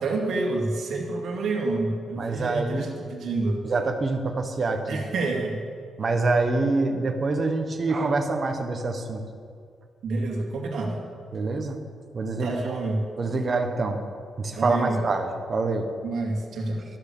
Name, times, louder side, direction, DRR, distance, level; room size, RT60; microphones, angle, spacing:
voice 1, 0.0-3.6 4.9-5.6 10.0-11.0 12.4-13.0 14.6-15.1 16.0-16.8, right 2 dB, 60° right, 0 dB, 2.3 m, -28 dB
voice 2, 2.2-2.9 3.6-5.0 6.0-9.2 11.3-11.8 12.1-12.8 13.2-14.0 14.4-15.9, right 3 dB, 30° right, 5 dB, 1.1 m, -26 dB
12.5 x 11.5 x 7.0 m, 2.1 s
cardioid pair, 180°, 0 cm